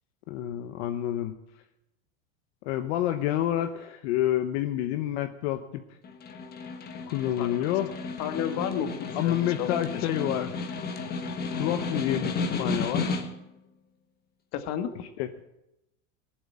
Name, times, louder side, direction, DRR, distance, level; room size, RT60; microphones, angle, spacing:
voice 1, 0.3-1.3 2.6-5.8 7.0-7.9 9.1-10.5 11.6-13.2 15.2-15.3, left 12 dB, 65° left, 8 dB, 1.1 m, -28 dB
Snare drum, 6.0-13.5, left 4 dB, 25° left, 1.4 m, -33 dB
voice 2, 7.4-7.7 8.2-10.2 14.5-14.9, left 9 dB, 45° left, 9 dB, 1.5 m, -33 dB
17.5 x 8.0 x 9.0 m, 0.88 s
supercardioid pair, 150°, 37 cm